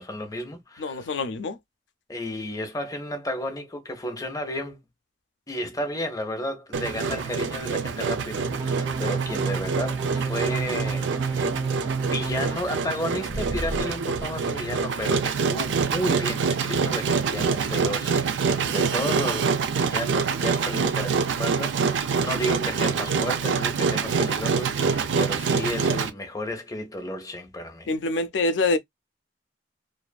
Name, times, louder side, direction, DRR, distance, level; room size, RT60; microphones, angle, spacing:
voice 1, 0.0-1.2 2.1-4.8 5.5-11.5 12.0-27.9, left 1 dB, 20° left, 0.7 m, -33 dB
voice 2, 0.8-1.6 27.9-28.8, left 3 dB, 85° left, 0.4 m, -25 dB
Engine, 6.7-26.1, right 5 dB, 90° right, 0.4 m, -26 dB
sound 1, 8.4-12.5 13.3-13.8, right 4 dB, 25° right, 0.5 m, -29 dB
2.6 x 2.4 x 2.2 m
head